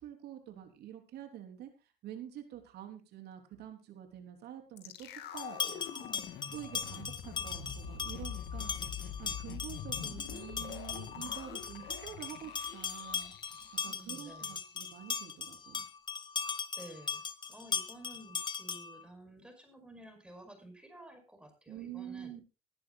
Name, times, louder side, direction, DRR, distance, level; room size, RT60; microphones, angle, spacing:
voice 1, 0.0-1.7 2.0-13.3 13.8-15.9 21.7-22.4, right 10 dB, 75° right, 5 dB, 3.6 m, -47 dB
sound 1, 4.8-14.9 15.2-15.3, left 8 dB, 75° left, 2.4 m, -45 dB
sound 2, 5.4-19.0, left 6 dB, 25° left, 1.2 m, -39 dB
voice 2, 13.8-14.6 16.8-17.2 17.5-22.4, right 1 dB, 5° right, 5 dB, 5.4 m, -52 dB
19.5 x 11.5 x 2.4 m, 0.30 s
cardioid pair, 110°, 17 cm